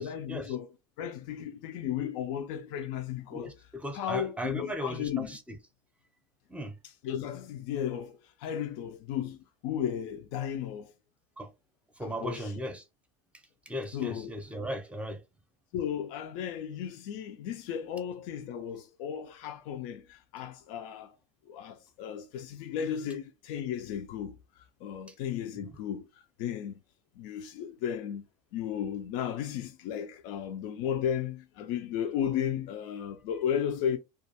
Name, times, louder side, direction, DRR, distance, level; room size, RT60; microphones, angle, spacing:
voice 1, 0.0-3.5 3.9-5.4 6.8-10.9 12.0-12.5 13.9-14.3 15.7-21.1 21.5-26.8 27.2-28.3 28.5-34.0, left 9 dB, 70° left, 0.4 m, -34 dB
voice 2, 3.3-5.4 6.5-6.7 11.4-11.5 12.0-12.8 13.7-15.2 25.6-25.7, equal, 5° right, 0.6 m, -37 dB
2.4 x 2.2 x 2.7 m
supercardioid pair, 100°, 17 cm